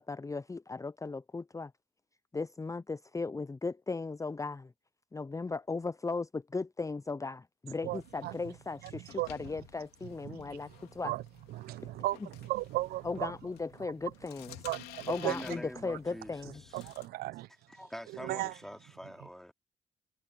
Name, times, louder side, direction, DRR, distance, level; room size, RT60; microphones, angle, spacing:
voice 1, 0.0-1.7 2.3-4.7 5.1-11.1 13.0-14.6 15.1-16.6, left 3 dB, 20° left, 0.6 m, -37 dB
sound 1, 7.7-17.1, left 17 dB, 80° left, 3.3 m, -54 dB
voice 2, 7.8-8.4 8.8-8.9 9.2-9.3 10.2-10.6 11.0-11.2 11.5-13.3 14.6-15.3 16.7-17.5 18.2-18.5, right 17 dB, 75° right, 0.9 m, -35 dB
voice 3, 15.3-16.9 17.7-19.5, equal, ahead, 3.0 m, -45 dB
hypercardioid pair, 40°, 16 cm